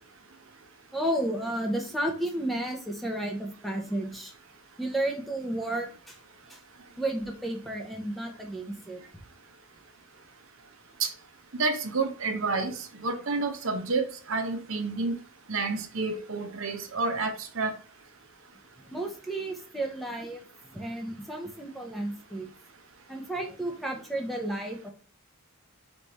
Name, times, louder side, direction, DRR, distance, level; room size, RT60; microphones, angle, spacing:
voice 1, 0.9-4.3 4.8-6.2 6.5-6.6 7.0-9.0 18.8-20.4 20.7-22.5 23.1-24.9, right 1 dB, ahead, 0.6 m, -32 dB
voice 2, 11.5-15.1 15.5-17.7, right 3 dB, 60° right, 0.7 m, -29 dB
3.5 x 3.2 x 4.1 m
head